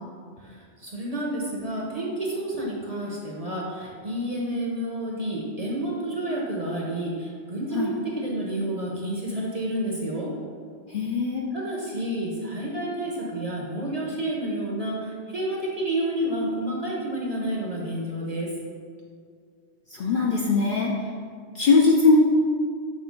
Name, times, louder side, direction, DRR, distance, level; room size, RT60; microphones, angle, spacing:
voice 1, 0.4-10.3 11.5-18.5, right 1 dB, 35° right, -3 dB, 0.8 m, -30 dB
voice 2, 10.9-11.5 19.9-20.9 21.5-22.2, left 4 dB, 55° left, -2 dB, 0.6 m, -20 dB
6.6 x 2.9 x 5.1 m, 2.1 s
omnidirectional pair, 1.3 m